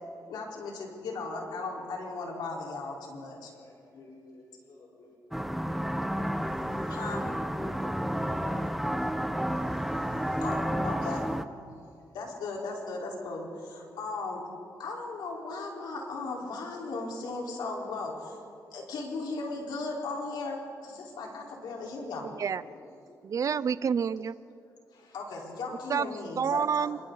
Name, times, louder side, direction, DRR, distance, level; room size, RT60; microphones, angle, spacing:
voice 1, 0.3-3.5 6.4-7.2 9.0-11.3 12.1-14.4 14.8-18.4 18.7-22.3 24.9-26.9, left 3 dB, 90° left, -1 dB, 4.1 m, -37 dB
voice 2, 3.5-5.2 7.2-8.0 11.7-11.9 21.9-23.2, left 2 dB, 65° left, -4 dB, 4.6 m, -53 dB
sound 1, 5.3-11.4, equal, ahead, 0.9 m, -31 dB
voice 3, 23.2-24.3 25.9-26.1 26.4-27.0, right 7 dB, 50° right, 16 dB, 0.5 m, -28 dB
27.5 x 24.0 x 4.0 m, 2.5 s
cardioid pair, 90°, 7 cm